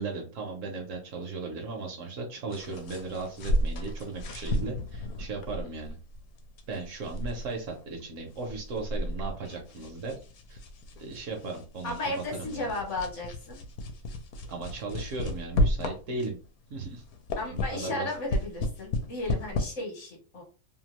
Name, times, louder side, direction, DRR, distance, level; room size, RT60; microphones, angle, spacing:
voice 1, 0.0-6.0 6.7-10.1 10.5-10.6 11.0-12.8 14.5-16.4 16.7-17.0 17.5-18.1, right 3 dB, 65° right, 2 dB, 0.9 m, -36 dB
sound 1, 2.5-16.5 16.9-19.7, left 1 dB, 80° left, 1.1 m, -33 dB
voice 2, 11.8-13.6 17.4-20.4, left 2 dB, 55° left, 1 dB, 1.2 m, -34 dB
2.8 x 2.3 x 2.9 m, 0.36 s
omnidirectional pair, 1.6 m